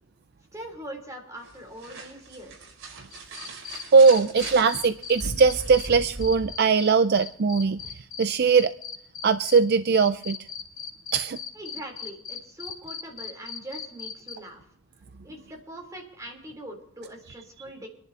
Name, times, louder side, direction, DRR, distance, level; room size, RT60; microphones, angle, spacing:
voice 1, 0.5-2.6 11.6-14.6 15.2-17.9, right 1 dB, 15° right, 0 dB, 3.8 m, -42 dB
sound 1, 1.4-6.5, right 2 dB, 65° right, 4.5 m, -39 dB
sound 2, 3.1-5.9 6.2-9.6 9.9-14.4, left 7 dB, 70° left, 2.6 m, -37 dB
voice 2, 3.9-8.7 9.2-10.4 11.1-11.4, right 5 dB, 50° right, 10 dB, 0.5 m, -20 dB
26.5 x 11.0 x 2.9 m, 0.67 s
head